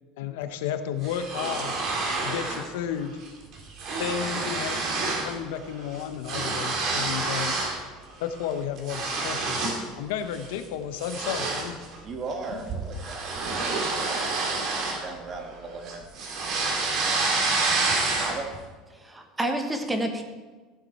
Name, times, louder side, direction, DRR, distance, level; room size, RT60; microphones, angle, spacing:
voice 1, 0.2-1.8 2.2-3.2 4.0-7.6 8.2-9.6 10.0-11.8, left 9 dB, 85° left, 8 dB, 1.0 m, -32 dB
sound 1, 1.0-2.7 3.0-3.3 3.5-5.3 5.6-7.8 8.2-9.9 10.3-10.5 11.0-15.5 15.9-18.6, right 3 dB, 45° right, 2.2 m, -28 dB
voice 2, 12.0-14.3 14.8-16.0 18.1-18.5, right 3 dB, 25° right, 3 dB, 1.5 m, -37 dB
voice 3, 18.9-20.2, right 1 dB, 10° right, 5 dB, 1.1 m, -29 dB
14.5 x 7.5 x 4.4 m, 1.3 s
cardioid pair, 160°, 0 cm